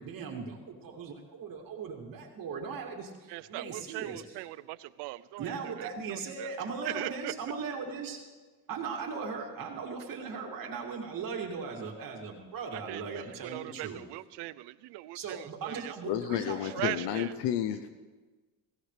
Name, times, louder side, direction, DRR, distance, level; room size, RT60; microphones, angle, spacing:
voice 1, 0.0-4.2 5.4-8.2 8.7-14.0 15.1-17.1, right 5 dB, 55° right, 1 dB, 2.6 m, -38 dB
voice 2, 3.3-6.5 6.8-7.3 12.7-15.9 16.8-17.3, right 18 dB, 80° right, 17 dB, 0.6 m, -40 dB
voice 3, 16.1-17.9, left 10 dB, 80° left, 10 dB, 0.8 m, -31 dB
22.5 x 16.5 x 3.4 m, 1.3 s
cardioid pair, 115°, 41 cm